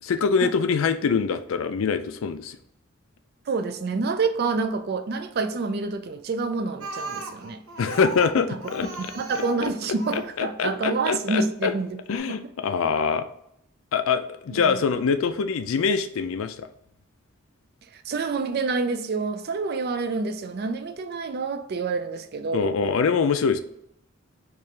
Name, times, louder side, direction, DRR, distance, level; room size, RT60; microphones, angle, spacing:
voice 1, 0.0-2.6 7.8-8.9 10.1-11.7 12.1-13.3 13.9-16.7 22.5-23.6, left 5 dB, 75° left, 0.4 m, -24 dB
voice 2, 3.5-7.6 8.5-12.0 12.2-12.4 14.5-14.8 17.8-22.8, right 4 dB, 50° right, 0.4 m, -28 dB
Speech, 6.8-10.3 11.3-11.4 11.8-11.9 12.1-12.2, right 2 dB, 85° right, 0.8 m, -37 dB
4.5 x 2.5 x 3.2 m
head